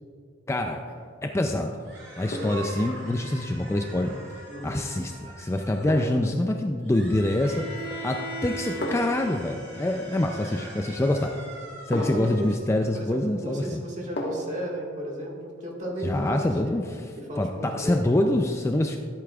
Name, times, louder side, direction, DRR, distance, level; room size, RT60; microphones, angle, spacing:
voice 1, 0.5-0.9 1.2-1.8 2.2-7.6 8.0-11.3 11.9-13.8 16.0-19.0, left 1 dB, 15° left, 3 dB, 0.3 m, -26 dB
sound 1, 0.7-1.1 2.3-2.7 4.8-5.0 5.9-6.3 7.7-8.1 8.8-9.3 10.9-11.0 11.9-12.4 14.2-14.6 15.0-15.1, equal, 55° left, 1.3 m, -33 dB
sound 2, 1.8-6.3 6.8-12.6, right 2 dB, 55° right, 2.2 m, -44 dB
voice 2, 4.5-4.8 11.2-11.4 11.9-12.5 12.9-16.4 16.6-16.8 17.2-18.0, right 1 dB, 35° right, -2 dB, 1.7 m, -35 dB
Bowed string instrument, 7.4-11.3, equal, 5° right, 2.4 m, -39 dB
13.5 x 8.3 x 2.4 m, 2.3 s
head